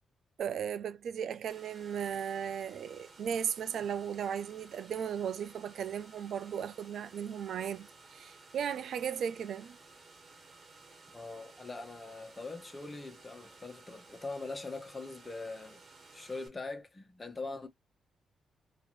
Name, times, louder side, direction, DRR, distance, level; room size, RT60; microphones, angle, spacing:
voice 1, 0.4-9.8, right 8 dB, 75° right, 0.3 m, -36 dB
sound 1, 1.5-16.5, right 3 dB, 55° right, 1.5 m, -56 dB
voice 2, 11.1-15.8 16.1-17.7, left 3 dB, 25° left, 1.1 m, -42 dB
2.8 x 2.5 x 3.0 m
supercardioid pair, 60°, 0 cm